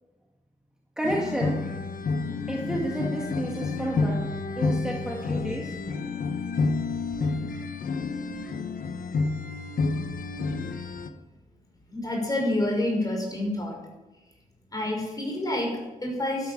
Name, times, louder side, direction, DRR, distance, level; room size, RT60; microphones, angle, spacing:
sound 1, 1.0-11.1, left 4 dB, 85° left, 1.2 m, -29 dB
voice 1, 1.0-1.6 2.5-4.2 4.5-5.8, right 1 dB, 5° right, -3 dB, 2.0 m, -30 dB
voice 2, 11.9-13.8 14.7-16.5, left 1 dB, 25° left, 0 dB, 5.7 m, -28 dB
13.0 x 11.0 x 8.8 m, 1.1 s
wide cardioid pair, 145°, 14 cm